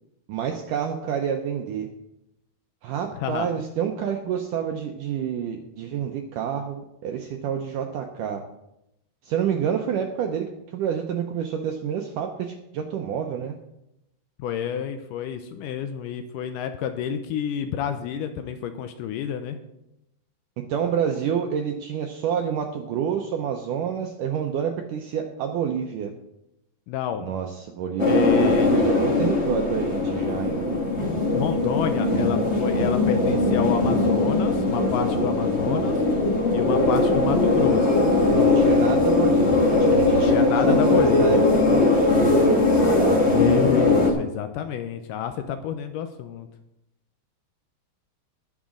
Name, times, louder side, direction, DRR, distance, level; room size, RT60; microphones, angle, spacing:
voice 1, 0.3-1.9 2.8-8.4 9.2-13.6 20.7-26.1 27.2-30.6 38.3-43.4, right 8 dB, 80° right, 3 dB, 1.9 m, -28 dB
voice 2, 14.4-19.6 26.9-27.2 28.0-28.7 31.3-36.0 36.5-37.9 40.1-41.4 43.3-46.5, left 8 dB, 85° left, 8 dB, 1.8 m, -29 dB
sound 1, 28.0-44.1, left 2 dB, 70° left, 0.6 m, -20 dB
20.5 x 7.3 x 3.8 m, 0.85 s
omnidirectional pair, 4.7 m